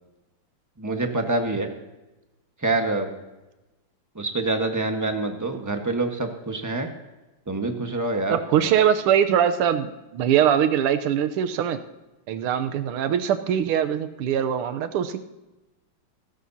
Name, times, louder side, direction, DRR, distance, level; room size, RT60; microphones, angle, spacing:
voice 1, 0.8-1.7 2.6-3.1 4.1-6.9 7.5-8.7, right 2 dB, 10° right, 4 dB, 1.0 m, -26 dB
voice 2, 8.3-11.8 12.3-15.2, right 9 dB, 85° right, 9 dB, 1.7 m, -22 dB
17.0 x 16.0 x 2.8 m, 1.1 s
omnidirectional pair, 2.4 m